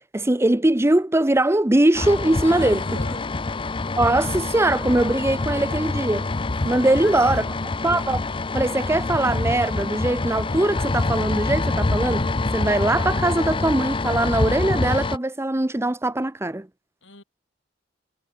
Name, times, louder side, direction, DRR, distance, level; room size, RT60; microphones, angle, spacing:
voice 1, 0.1-2.8 4.0-6.3 6.6-7.4 7.8-8.2 8.5-16.7, right 1 dB, 15° right, 0.7 m, -21 dB
sound 1, 1.9-15.2, left 3 dB, 25° left, 0.6 m, -26 dB
voice 2, 2.4-3.3 6.8-7.6 17.0-17.2, left 2 dB, 80° left, 7.5 m, -40 dB
head